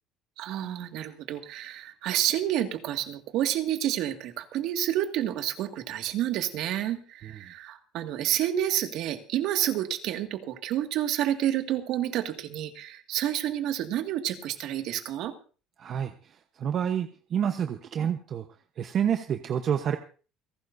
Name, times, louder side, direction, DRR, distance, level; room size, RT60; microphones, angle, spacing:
voice 1, 0.4-15.3, right 12 dB, 60° right, 6 dB, 2.0 m, -29 dB
voice 2, 15.8-18.4 18.8-20.0, right 8 dB, 40° right, 6 dB, 1.0 m, -29 dB
29.0 x 11.5 x 2.7 m, 0.37 s
cardioid pair, 140°, 0 cm